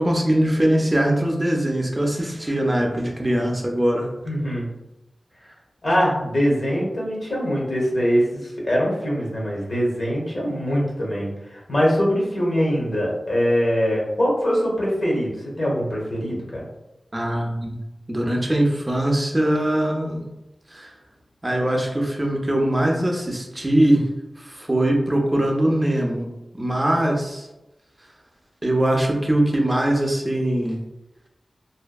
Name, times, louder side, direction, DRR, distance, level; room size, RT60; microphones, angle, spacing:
voice 1, 0.0-4.1 17.1-17.8 18.1-20.3 20.7-20.9 21.4-24.0 24.4-26.3 26.5-27.5 28.6-30.8, right 1 dB, 20° right, 0 dB, 0.5 m, -21 dB
voice 2, 4.2-4.7 5.8-16.6, equal, 50° left, -4 dB, 0.9 m, -23 dB
2.6 x 2.1 x 2.2 m, 0.96 s
wide cardioid pair, 80°, 0 cm